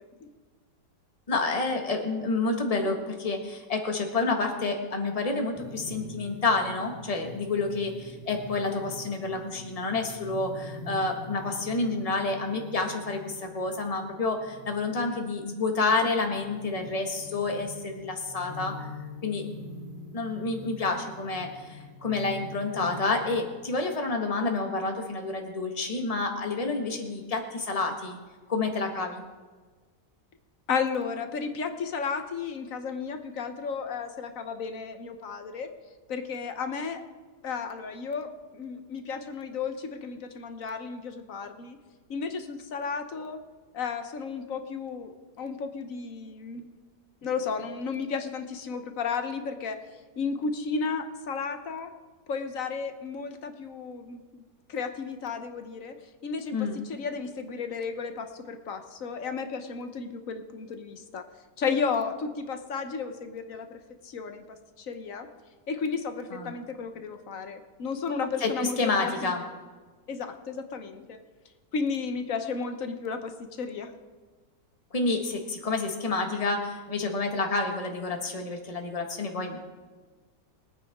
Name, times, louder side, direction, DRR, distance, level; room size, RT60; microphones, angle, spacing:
voice 1, 1.3-18.9 19.2-19.5 20.1-28.2 28.5-29.2 56.5-56.8 66.3-66.5 68.4-69.4 74.9-79.6, left 3 dB, 20° left, 3 dB, 1.4 m, -29 dB
sound 1, 5.6-23.6, left 1 dB, 90° left, 3.3 m, -44 dB
voice 2, 30.7-35.7 36.1-37.0 37.4-41.8 42.1-43.4 43.7-46.7 47.2-51.9 52.3-54.4 54.7-55.9 56.2-61.2 61.6-64.4 64.8-65.3 65.7-69.3 70.1-71.2 71.7-73.9, left 5 dB, 55° left, 7 dB, 1.2 m, -33 dB
23.0 x 9.2 x 3.6 m, 1.4 s
omnidirectional pair, 1.9 m